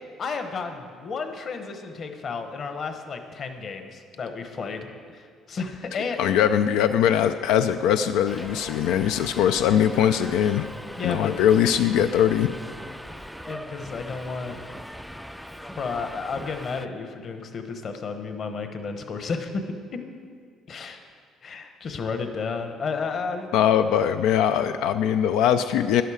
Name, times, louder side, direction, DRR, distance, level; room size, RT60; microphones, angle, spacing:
voice 1, 0.2-6.2 10.9-11.3 13.5-14.6 15.8-19.6 20.7-21.0 21.4-23.5, left 4 dB, 35° left, 7 dB, 1.0 m, -32 dB
voice 2, 6.2-10.7 11.0-12.5 23.5-26.0, left 9 dB, 90° left, 9 dB, 0.4 m, -21 dB
Subway metro underground, 8.3-16.9, equal, ahead, 0.3 m, -40 dB
13.0 x 11.0 x 4.9 m, 2.1 s
cardioid pair, 155°, 0 cm